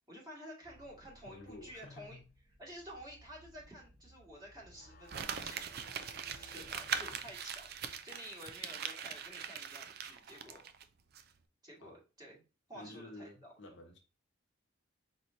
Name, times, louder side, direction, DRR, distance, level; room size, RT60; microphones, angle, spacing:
voice 1, 0.1-2.2 2.6-10.6 11.6-12.4 12.7-13.5, equal, 20° right, 1.9 m, -52 dB
sound 1, 0.6-8.1, equal, 5° left, 1.1 m, -63 dB
voice 2, 1.2-2.2 6.5-7.2 11.8-11.9 12.7-14.0, left 2 dB, 65° left, 1.0 m, -52 dB
sound 2, 4.7-7.6, left 3 dB, 45° left, 0.8 m, -61 dB
Crumpling crinkling, 5.1-10.8 11.2-11.3, right 7 dB, 55° right, 0.4 m, -41 dB
4.6 x 4.1 x 2.6 m
head